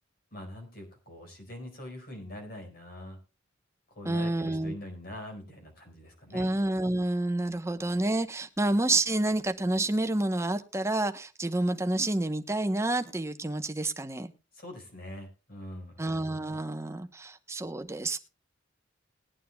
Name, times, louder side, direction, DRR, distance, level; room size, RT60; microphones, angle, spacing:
voice 1, 0.3-3.2 3.9-6.5 14.5-16.0, left 1 dB, 50° left, 4.5 m, -43 dB
voice 2, 4.0-4.8 6.3-14.3 16.0-18.2, right 2 dB, 15° right, 0.8 m, -29 dB
20.0 x 9.3 x 2.2 m
head